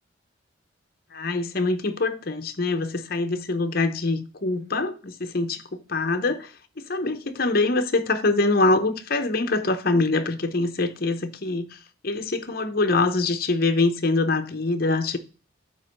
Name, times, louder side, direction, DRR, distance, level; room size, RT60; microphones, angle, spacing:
voice 1, 1.1-6.5 6.8-15.2, left 3 dB, 50° left, 0.8 m, -24 dB
8.9 x 3.0 x 6.4 m
head